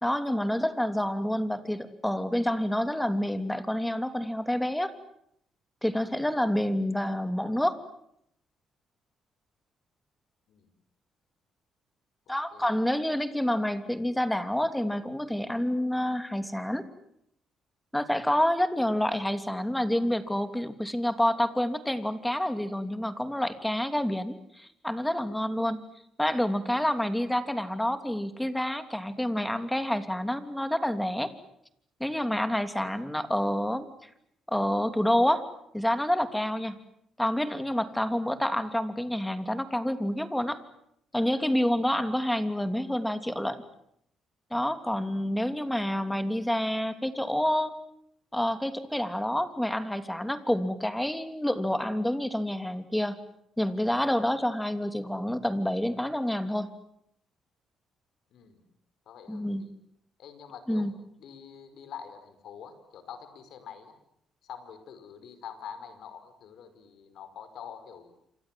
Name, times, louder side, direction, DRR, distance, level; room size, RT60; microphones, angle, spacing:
voice 1, 0.0-4.9 5.8-7.8 12.3-16.9 17.9-25.8 26.2-31.3 32.0-34.1 34.5-35.4 35.7-36.8 37.2-40.6 41.1-43.6 44.5-47.8 48.3-53.2 53.6-56.7 59.3-59.6 60.7-60.9, left 1 dB, 5° left, 9 dB, 2.9 m, -28 dB
voice 2, 12.5-12.8 32.8-33.0 45.4-45.6 58.3-58.6 59.0-59.7 60.2-60.9 61.2-63.9 64.4-68.1, left 8 dB, 75° left, 11 dB, 5.2 m, -46 dB
28.0 x 26.5 x 7.7 m, 0.74 s
cardioid pair, 90°, 0 cm